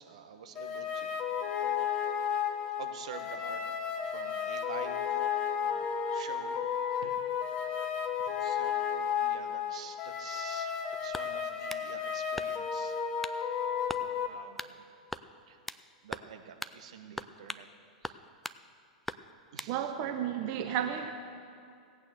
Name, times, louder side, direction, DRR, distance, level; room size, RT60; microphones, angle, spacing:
voice 1, 0.0-1.8 2.5-3.6 4.0-5.2 5.6-7.4 8.2-13.0 13.3-13.6 14.0-15.0 15.5-15.6 16.0-17.7 18.0-18.2 19.5-19.9, right 7 dB, 60° right, 7 dB, 1.1 m, -48 dB
sound 1, 0.5-14.3, left 8 dB, 30° left, 1.1 m, -33 dB
sound 2, 11.1-11.9 12.4-12.8 13.2-13.4 13.9-14.1 14.6-14.8 15.1-15.8 16.1-16.3 16.6-16.8 17.2-17.7 18.0-18.6 19.1-19.7, left 1 dB, 5° left, 0.4 m, -40 dB
voice 2, 19.7-21.1, right 9 dB, 45° right, 7 dB, 0.7 m, -32 dB
16.5 x 8.8 x 6.8 m, 2.6 s
figure-of-eight pair, 95°, 4 cm